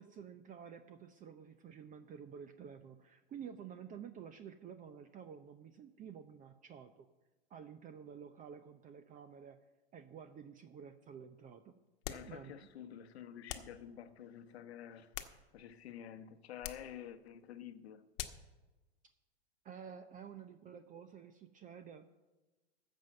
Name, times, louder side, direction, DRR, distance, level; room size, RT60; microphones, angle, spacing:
voice 1, 0.0-7.1 7.5-9.6 9.9-11.7 12.2-12.7 19.6-22.1, right 7 dB, 25° right, 0.7 m, -51 dB
sound 1, 12.0-12.4 13.5-13.8 14.9-15.8 16.6-16.9 18.2-18.5, left 12 dB, 55° left, 1.2 m, -45 dB
voice 2, 12.1-15.1 15.5-18.0, left 9 dB, 75° left, 1.1 m, -50 dB
14.0 x 5.4 x 7.7 m
hypercardioid pair, 110°, 32 cm